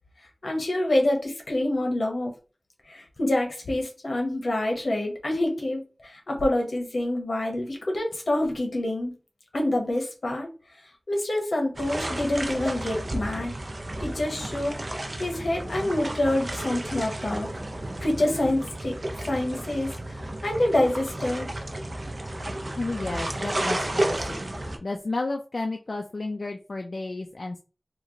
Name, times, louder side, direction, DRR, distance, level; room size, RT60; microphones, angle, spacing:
voice 1, 0.4-2.3 2.9-9.1 9.5-10.5 11.1-13.5 14.0-14.8 15.2-17.5 18.0-19.0 19.2-20.2 20.4-21.5, left 1 dB, 85° left, 2 dB, 0.9 m, -26 dB
sound 1, 11.7-24.8, right 1 dB, 60° right, 0.6 m, -32 dB
voice 2, 22.8-24.4 24.8-27.6, left 2 dB, 70° left, 3 dB, 0.4 m, -32 dB
3.1 x 2.1 x 3.6 m, 0.34 s
wide cardioid pair, 45°, 0 cm